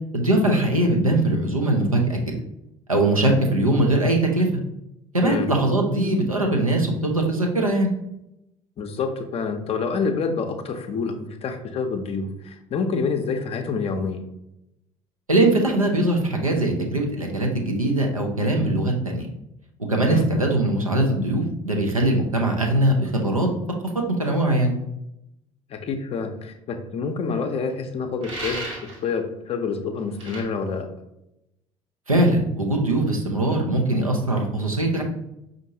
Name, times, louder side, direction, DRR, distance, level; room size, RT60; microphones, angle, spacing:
voice 1, 0.1-2.2 2.9-4.5 5.1-7.9 15.3-19.3 19.9-23.5 24.1-24.7 32.1-35.0, right 1 dB, 90° right, 1 dB, 0.5 m, -21 dB
voice 2, 8.8-14.3 20.1-20.3 25.7-28.7 29.0-30.9, left 5 dB, 35° left, 5 dB, 0.5 m, -27 dB
sound 1, 28.2-29.0 30.2-30.4, right 2 dB, 70° right, 1.0 m, -33 dB
5.2 x 2.5 x 2.7 m, 0.84 s
figure-of-eight pair, 55°, 17 cm